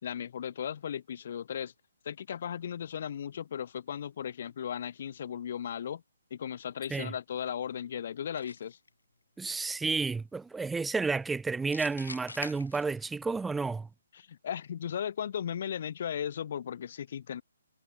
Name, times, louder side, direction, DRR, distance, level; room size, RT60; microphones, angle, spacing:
voice 1, 0.0-1.7 2.0-6.0 6.3-8.8 14.1-17.4, left 8 dB, 40° left, 3.2 m, -36 dB
sound 1, 8.4-8.9 11.7-13.3, left 3 dB, 70° left, 1.0 m, -44 dB
voice 2, 9.4-13.9, right 4 dB, 5° right, 0.5 m, -31 dB
figure-of-eight pair, 135°, 0 cm